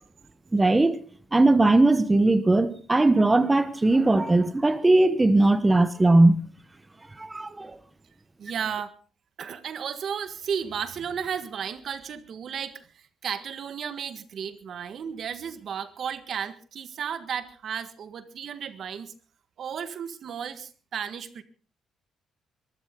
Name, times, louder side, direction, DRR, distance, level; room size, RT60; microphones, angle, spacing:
voice 1, 0.5-1.0 1.3-6.4 7.2-7.8, right 2 dB, 15° right, 1.1 m, -19 dB
voice 2, 8.4-8.9 9.4-19.1 19.6-21.4, right 7 dB, 60° right, 1.7 m, -34 dB
23.0 x 14.0 x 3.8 m
cardioid pair, 90°, 0 cm